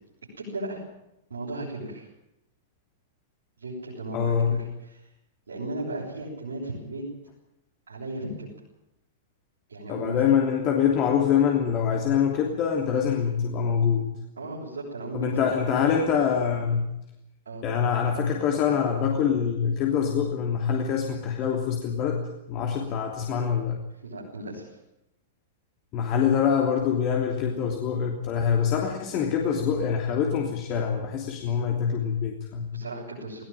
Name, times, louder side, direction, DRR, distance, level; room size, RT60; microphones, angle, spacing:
voice 1, 0.4-0.8 1.3-2.1 3.6-4.4 4.9-5.0 5.5-7.1 7.9-8.5 9.7-10.4 14.4-15.6 17.5-17.6 24.0-24.7 32.7-33.5, right 2 dB, 80° right, -6 dB, 7.1 m, -35 dB
voice 2, 4.1-4.6 9.9-14.1 15.1-16.9 17.6-22.2 22.5-23.8 25.9-32.8, left 7 dB, 40° left, 1 dB, 3.1 m, -25 dB
19.5 x 18.0 x 9.0 m, 0.88 s
figure-of-eight pair, 100°, 0 cm